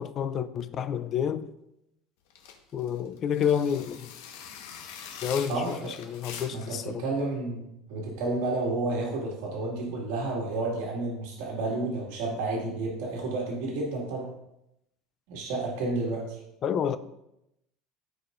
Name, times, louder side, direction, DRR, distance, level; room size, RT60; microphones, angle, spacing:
voice 1, 0.0-1.5 2.7-4.1 5.2-7.0 16.6-17.0, left 8 dB, 30° left, 0.4 m, -29 dB
sound 1, 2.3-6.8, left 7 dB, 90° left, 1.3 m, -43 dB
voice 2, 5.5-5.9 6.5-14.3 15.3-16.4, right 2 dB, 75° right, 2.1 m, -31 dB
14.5 x 4.9 x 2.6 m
cardioid pair, 160°, 0 cm